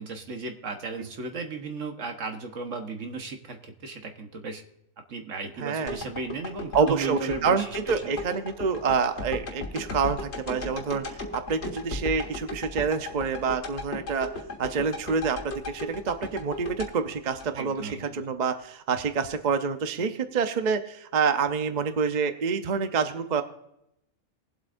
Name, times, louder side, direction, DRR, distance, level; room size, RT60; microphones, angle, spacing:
voice 1, 0.0-4.6 5.1-8.1 17.6-18.2, right 4 dB, 70° right, 5 dB, 1.6 m, -36 dB
voice 2, 5.6-6.0 6.7-14.3 14.6-23.4, right 5 dB, 40° right, 8 dB, 0.7 m, -27 dB
sound 1, 5.9-18.0 18.5-18.6, left 2 dB, 60° left, 1.8 m, -36 dB
21.0 x 8.0 x 2.6 m, 0.82 s
omnidirectional pair, 1.3 m